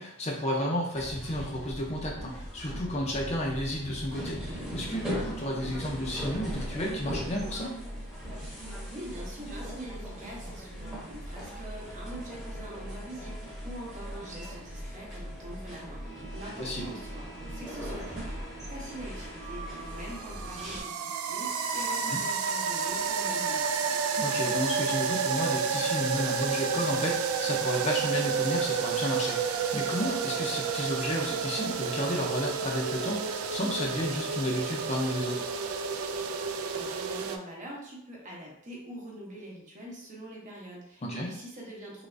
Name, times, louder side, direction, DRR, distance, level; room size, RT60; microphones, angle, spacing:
voice 1, 0.0-7.7 16.6-16.9 22.1-22.2 24.2-35.4 41.0-41.3, equal, 30° left, -2 dB, 0.5 m, -32 dB
sound 1, 0.9-20.8, equal, ahead, 0.9 m, -39 dB
voice 2, 8.9-18.3 18.7-23.9 36.7-42.1, right 1 dB, 35° right, -3 dB, 0.8 m, -44 dB
sound 2, 19.4-37.4, right 6 dB, 70° right, 0.3 m, -30 dB
3.3 x 3.0 x 2.6 m, 0.73 s
head